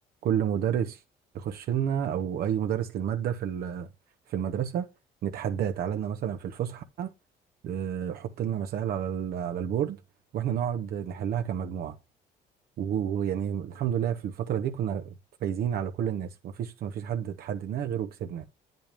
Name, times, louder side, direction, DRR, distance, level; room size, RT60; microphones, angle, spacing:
voice 1, 0.2-1.0 1.3-3.9 4.3-4.9 5.2-7.1 7.6-10.0 10.3-12.0 12.8-15.1 15.4-18.4, right 9 dB, 65° right, 1.0 m, -30 dB
9.0 x 7.9 x 3.5 m
cardioid pair, 110°, 17 cm